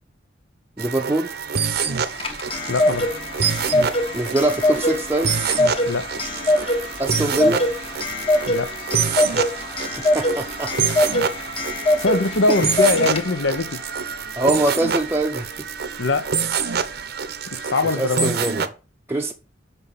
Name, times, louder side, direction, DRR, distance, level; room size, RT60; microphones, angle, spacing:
voice 1, 0.8-1.3 4.1-5.3 7.0-7.7 10.1-10.7 12.5-12.6 14.4-15.7 18.0-18.7 19.1-19.3, right 2 dB, 15° right, 0.6 m, -23 dB
sound 1, 0.8-18.7, right 6 dB, 60° right, 0.8 m, -27 dB
Clock, 2.0-13.6, left 1 dB, 30° left, 1.2 m, -23 dB
voice 2, 2.7-3.1 5.9-6.1 8.5-8.7 12.0-13.8 16.0-16.4 17.5-18.5, left 3 dB, 70° left, 0.9 m, -22 dB
5.6 x 5.6 x 6.7 m
head